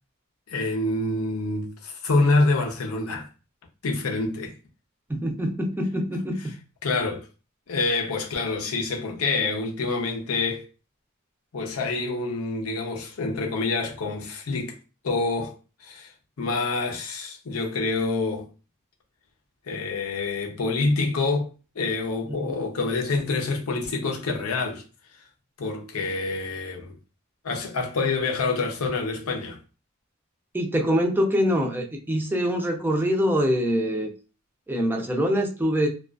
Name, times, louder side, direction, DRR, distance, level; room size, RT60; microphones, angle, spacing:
voice 1, 0.5-3.3 3.8-4.5 6.8-7.3 7.7-10.6 11.5-14.7 15.0-15.5 15.8-16.1 16.4-18.5 19.7-21.5 21.8-24.8 25.6-26.9 27.4-29.6, left 3 dB, 80° left, 0.6 m, -26 dB
voice 2, 5.1-6.4 22.4-22.5 30.5-34.1 34.7-35.9, equal, 10° right, 0.4 m, -24 dB
2.3 x 2.3 x 2.3 m
head